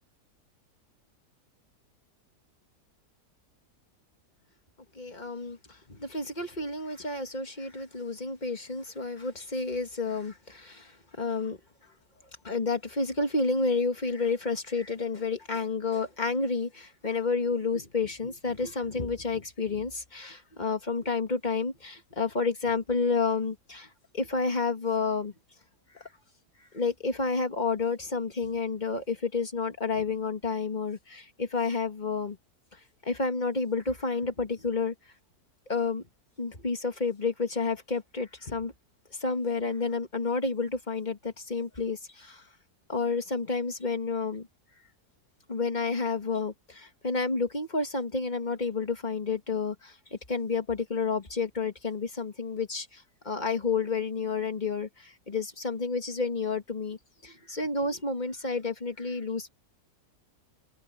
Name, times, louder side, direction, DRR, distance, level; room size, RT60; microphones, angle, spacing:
voice 1, 5.0-11.6 12.4-23.9 24.1-25.3 25.9-26.1 26.7-32.4 33.0-34.9 35.7-36.0 36.4-38.7 39.2-42.4 42.9-44.5 45.5-57.0 57.2-59.5, left 4 dB, 25° left, 1.9 m, -30 dB
omnidirectional pair, 1.7 m